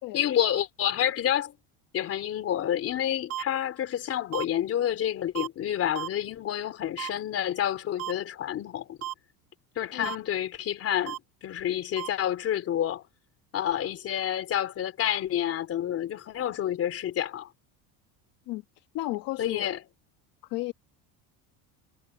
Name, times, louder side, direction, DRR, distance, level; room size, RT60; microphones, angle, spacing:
voice 1, 0.1-1.5 1.9-9.0 9.7-13.0 13.5-17.5 19.4-19.8, left 10 dB, 35° left, 3.5 m, -29 dB
sound 1, 3.3-3.4 4.3-4.4 5.3-5.5 5.9-6.1 7.0-7.1 8.0-8.1 9.0-9.1 10.0-10.2 11.1-11.2 12.0-12.1, right 12 dB, 35° right, 1.1 m, -33 dB
voice 2, 18.5-19.7 20.4-20.7, left 19 dB, 55° left, 1.4 m, -33 dB
cardioid pair, 160°, 40 cm